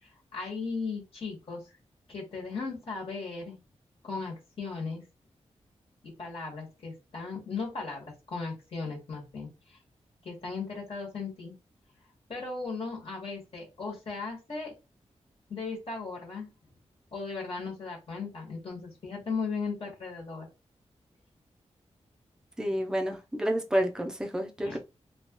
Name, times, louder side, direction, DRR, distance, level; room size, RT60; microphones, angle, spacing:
voice 1, 0.0-1.6 2.1-3.6 4.0-5.0 6.0-9.8 10.2-11.5 12.3-14.7 15.5-16.5 17.1-20.5 24.6-24.8, left 4 dB, 55° left, 1.3 m, -37 dB
voice 2, 22.6-24.8, equal, 5° right, 0.5 m, -29 dB
3.0 x 2.4 x 2.9 m
wide cardioid pair, 105°, 12 cm